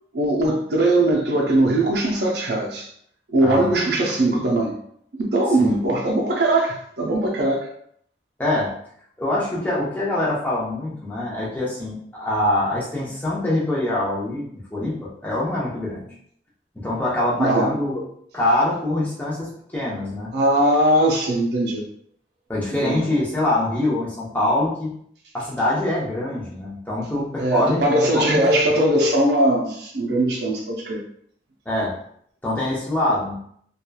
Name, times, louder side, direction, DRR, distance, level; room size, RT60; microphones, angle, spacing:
voice 1, 0.1-2.9 3.3-4.8 5.1-7.7 17.4-17.7 20.3-21.9 22.8-23.1 27.4-31.0, right 1 dB, 70° right, -1 dB, 0.4 m, -20 dB
voice 2, 3.4-3.7 5.6-5.8 8.4-8.7 9.2-16.1 16.7-18.0 18.3-20.3 22.5-24.9 25.3-28.4 31.7-31.9 32.4-33.3, left 1 dB, 10° left, -7 dB, 0.7 m, -24 dB
2.8 x 2.3 x 2.2 m, 0.66 s
head